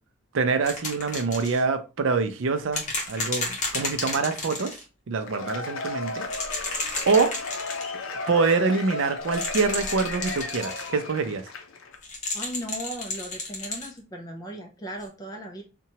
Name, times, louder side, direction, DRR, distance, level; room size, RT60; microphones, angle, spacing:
voice 1, 0.3-4.7 5.1-6.3 7.1-7.3 8.3-11.5, right 4 dB, 70° right, 0.4 m, -25 dB
sound 1, 0.6-1.6 2.7-4.8 6.2-7.9 9.2-10.9 12.0-13.9 15.0-15.1, left 2 dB, 35° left, 0.8 m, -32 dB
Cheering / Applause / Crowd, 5.2-12.0, left 3 dB, 75° left, 0.5 m, -35 dB
voice 2, 6.9-7.3 12.3-15.6, right 1 dB, 20° left, 0.4 m, -37 dB
2.8 x 2.2 x 2.8 m
head